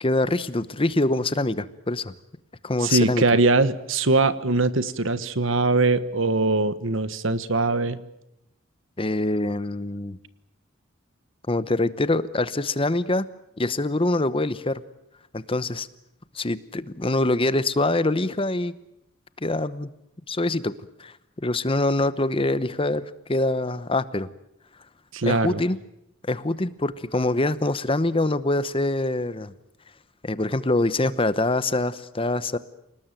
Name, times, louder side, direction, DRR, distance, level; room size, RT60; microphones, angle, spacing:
voice 1, 0.0-2.1 2.6-3.2 9.0-10.2 11.5-13.3 13.6-14.8 15.3-15.9 16.3-18.7 19.4-19.9 20.3-20.7 21.0-24.3 25.3-25.8 26.3-29.5 30.2-32.6, left 2 dB, 25° left, 15 dB, 0.9 m, -24 dB
voice 2, 2.8-8.0 25.1-25.6, right 3 dB, 65° right, 14 dB, 1.4 m, -22 dB
29.0 x 19.0 x 9.1 m, 0.81 s
head